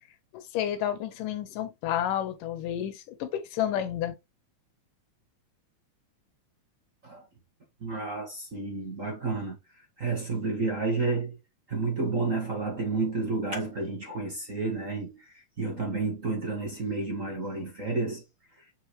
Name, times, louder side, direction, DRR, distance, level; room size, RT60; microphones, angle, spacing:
voice 1, 0.3-4.2, left 10 dB, 90° left, 2.7 m, -30 dB
voice 2, 7.8-9.6 10.0-11.4 11.7-18.2, right 3 dB, 30° right, 1.6 m, -31 dB
7.4 x 4.8 x 3.1 m
omnidirectional pair, 3.7 m